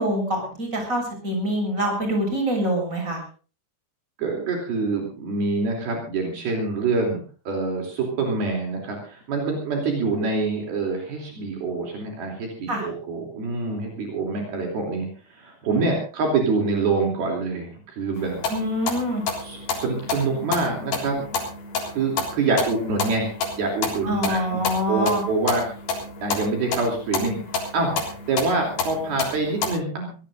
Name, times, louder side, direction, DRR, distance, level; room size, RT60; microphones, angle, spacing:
voice 1, 0.0-3.2 12.7-12.9 18.5-19.2 24.0-25.2, equal, 20° right, 2 dB, 7.4 m, -25 dB
voice 2, 4.2-7.2 7.5-18.4 19.4-21.3 21.9-24.6 24.9-25.7 26.2-27.4 27.7-30.2, right 3 dB, 65° right, 1 dB, 4.9 m, -26 dB
sound 1, 18.2-29.7, left 4 dB, 75° left, 5.7 m, -30 dB
23.5 x 18.0 x 2.6 m, 0.38 s
omnidirectional pair, 4.8 m